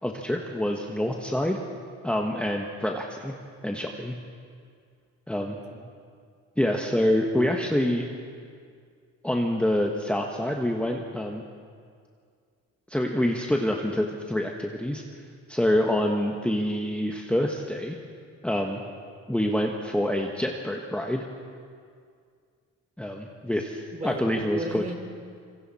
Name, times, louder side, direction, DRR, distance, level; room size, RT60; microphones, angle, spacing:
voice 1, 0.0-1.6 2.0-3.3 3.6-4.2 5.3-5.6 6.6-8.1 9.2-11.4 12.9-15.0 15.5-18.0 18.4-18.8 19.3-21.3 23.0-24.8, left 1 dB, 5° left, 1 dB, 1.4 m, -26 dB
voice 2, 5.4-5.9 23.9-25.0, right 1 dB, 25° right, 4 dB, 3.2 m, -36 dB
26.0 x 23.5 x 4.3 m, 2.2 s
cardioid pair, 90°, 30 cm